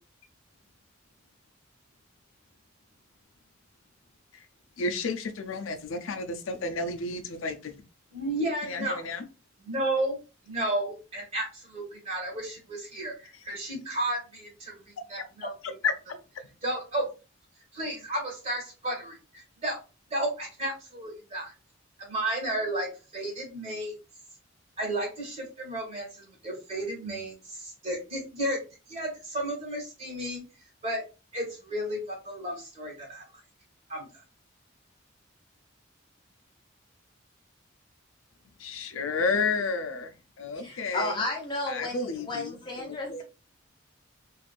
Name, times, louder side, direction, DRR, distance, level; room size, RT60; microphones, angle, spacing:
voice 1, 4.8-7.7 8.6-9.2 15.6-15.9 38.6-40.1 40.4-41.2 41.7-42.6 43.1-43.2, left 4 dB, 80° left, 8 dB, 0.5 m, -31 dB
voice 2, 8.1-9.0 9.6-10.2 10.4-15.5 16.6-17.0 17.7-19.8 20.1-21.5 22.0-23.9 24.8-28.6 28.9-30.4 30.8-31.0 31.3-33.2 33.9-34.1, right 1 dB, 35° right, -2 dB, 1.6 m, -33 dB
voice 3, 40.6-43.2, left 2 dB, 25° left, -1 dB, 0.8 m, -33 dB
3.3 x 2.5 x 2.5 m, 0.31 s
head